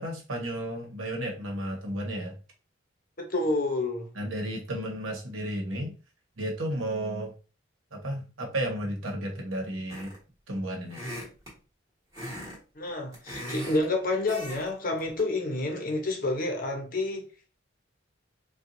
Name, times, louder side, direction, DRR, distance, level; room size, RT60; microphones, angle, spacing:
voice 1, 0.0-2.4 4.1-5.9 6.4-7.3 7.9-10.1 10.5-11.0, right 1 dB, 85° right, 1.1 m, -33 dB
voice 2, 3.2-4.1 12.7-17.2, left 2 dB, 45° left, 0.7 m, -29 dB
sound 1, 9.9-10.3 10.9-11.5 12.1-12.6 12.9-13.9 14.3-14.7 15.0-15.2, equal, 15° right, 1.3 m, -38 dB
4.3 x 2.3 x 2.5 m
head